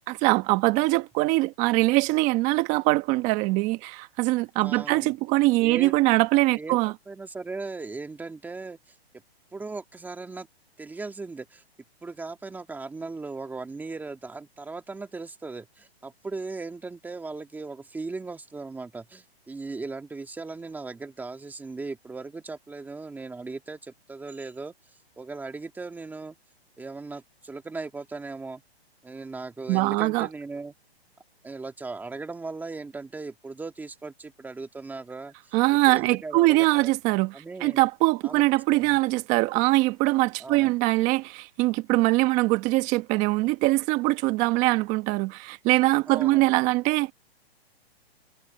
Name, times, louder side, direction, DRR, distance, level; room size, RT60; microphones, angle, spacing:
voice 1, 0.1-6.9 29.7-30.3 35.5-37.3 37.6-47.1, right 20 dB, 25° right, 1.3 m, -22 dB
voice 2, 4.6-5.1 5.6-5.9 6.6-6.8 7.1-8.8 9.5-10.5 10.8-11.6 12.0-24.7 25.2-26.4 26.8-28.6 29.0-30.7 31.4-36.9 37.3-37.9 38.2-38.4 38.7-39.0 40.4-40.8 46.1-46.5, right 3 dB, 5° right, 1.9 m, -38 dB
hypercardioid pair, 155°, 32 cm